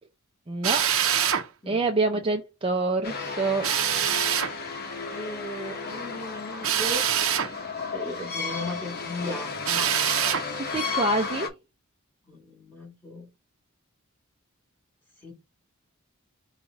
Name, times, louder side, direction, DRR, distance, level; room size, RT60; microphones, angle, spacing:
voice 1, 0.5-1.0 1.7-3.7 10.5-11.5, right 3 dB, 25° right, 0.5 m, -26 dB
Drill, 0.6-1.5 3.6-4.5 6.6-7.5 9.6-10.5, right 9 dB, 70° right, 0.7 m, -24 dB
sound 1, 3.0-11.5, left 4 dB, 45° left, 1.1 m, -34 dB
voice 2, 5.1-7.1 7.9-10.0 12.3-13.3 15.2-15.3, left 1 dB, 10° left, 1.6 m, -36 dB
5.5 x 2.4 x 3.8 m
head